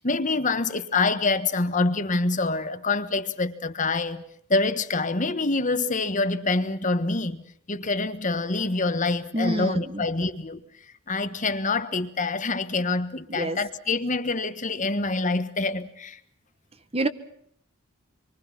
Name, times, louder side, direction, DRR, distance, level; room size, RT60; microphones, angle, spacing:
voice 1, 0.0-4.2 4.5-7.4 7.7-10.6 11.1-16.2, left 3 dB, 35° left, 1.4 m, -26 dB
voice 2, 9.3-10.0 13.3-13.6 16.9-17.1, right 1 dB, 30° right, 1.3 m, -27 dB
27.0 x 24.0 x 5.9 m
head